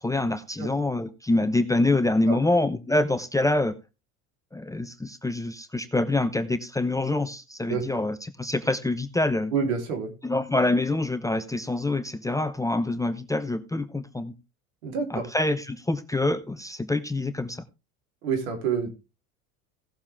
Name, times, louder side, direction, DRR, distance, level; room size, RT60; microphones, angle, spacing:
voice 1, 0.0-3.8 4.5-9.5 10.2-14.3 15.1-17.6, left 2 dB, 10° left, 10 dB, 0.8 m, -26 dB
voice 2, 9.5-10.1 14.8-15.3 18.2-18.9, right 6 dB, 70° right, 4 dB, 3.9 m, -27 dB
16.5 x 7.2 x 3.6 m, 0.28 s
hypercardioid pair, 75°, 43 cm